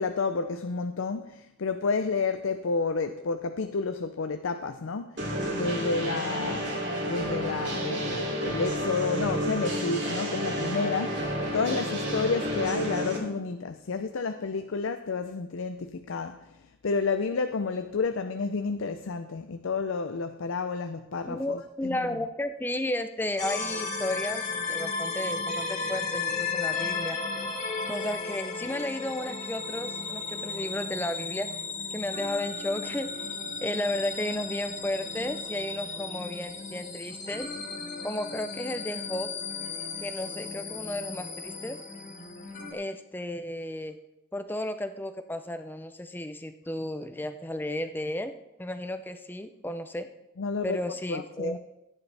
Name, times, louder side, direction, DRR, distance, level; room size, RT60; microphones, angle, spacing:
voice 1, 0.0-16.6 16.8-22.1 50.4-50.8 51.1-51.6, left 4 dB, 75° left, 8 dB, 0.5 m, -30 dB
sound 1, 5.2-13.2, equal, 55° right, 2.9 m, -30 dB
voice 2, 21.3-27.2 27.9-31.6 31.9-33.2 33.6-37.5 38.0-39.3 40.0-41.8 42.7-44.0 44.3-48.3 48.6-50.1 50.6-51.6, left 1 dB, 10° left, 9 dB, 0.5 m, -33 dB
sound 2, 23.4-42.7, left 4 dB, 35° left, 1.8 m, -34 dB
15.0 x 9.7 x 3.4 m, 0.93 s
head